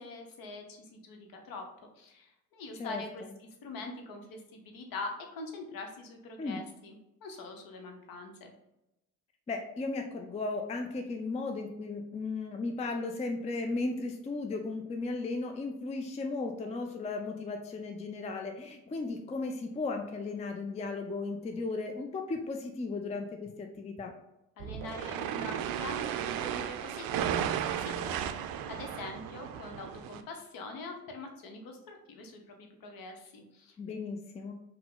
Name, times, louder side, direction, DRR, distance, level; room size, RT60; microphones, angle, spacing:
voice 1, 0.0-1.7 2.0-3.2 3.6-7.0 7.2-8.5 24.6-27.5 27.8-33.7, left 3 dB, 50° left, 4 dB, 0.9 m, -44 dB
voice 2, 9.5-24.1 33.8-34.5, left 3 dB, 15° left, 4 dB, 0.5 m, -35 dB
sound 1, 24.6-30.2, right 9 dB, 50° right, 0.5 m, -34 dB
5.5 x 2.2 x 3.8 m, 0.90 s
figure-of-eight pair, 40°, 44 cm